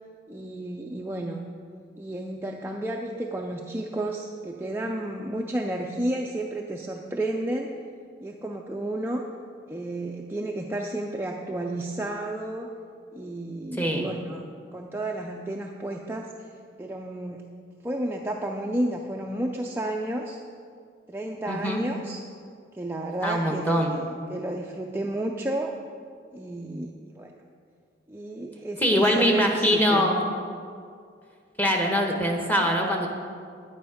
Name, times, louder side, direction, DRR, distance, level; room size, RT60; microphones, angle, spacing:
voice 1, 0.3-1.5 2.0-7.7 8.2-9.3 9.7-12.7 13.1-14.4 14.7-16.5 16.8-17.4 17.8-20.4 21.1-22.2 22.7-25.7 26.3-27.3 28.1-30.1, right 1 dB, 10° right, 0 dB, 0.4 m, -32 dB
voice 2, 21.5-21.8 23.2-24.0 28.8-30.2 31.6-33.1, equal, 10° left, 1 dB, 1.1 m, -23 dB
9.8 x 9.2 x 5.0 m, 2.3 s
head